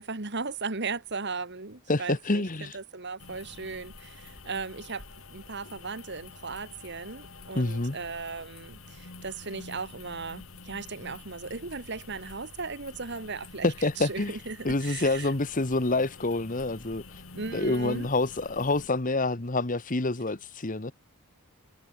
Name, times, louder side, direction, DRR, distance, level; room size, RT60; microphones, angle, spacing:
voice 1, 0.0-5.0 5.3-15.3 17.3-18.1, right 4 dB, 50° right, 1.7 m, -37 dB
voice 2, 1.9-2.8 7.5-8.0 13.6-14.4 14.6-17.2 17.5-20.9, left 2 dB, 35° left, 1.2 m, -27 dB
sound 1, 3.2-18.9, left 3 dB, 65° left, 2.7 m, -48 dB
head